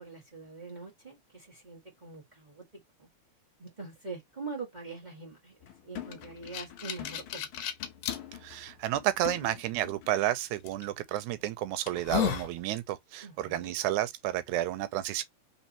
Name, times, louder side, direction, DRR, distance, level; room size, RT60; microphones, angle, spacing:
voice 1, 0.0-2.6 3.0-3.1 3.6-5.6 5.8-7.5 13.2-13.8, right 4 dB, 20° right, 1.4 m, -43 dB
sound 1, 5.6-10.2 10.5-10.7, left 12 dB, 90° left, 1.1 m, -45 dB
Swig From Flask With Breath, 6.1-8.2 8.8-8.9 10.7-10.9 11.4-11.5 11.9-12.5, left 10 dB, 70° left, 1.8 m, -33 dB
voice 2, 8.4-15.2, right 13 dB, 90° right, 2.1 m, -31 dB
4.2 x 3.7 x 2.9 m
omnidirectional pair, 3.3 m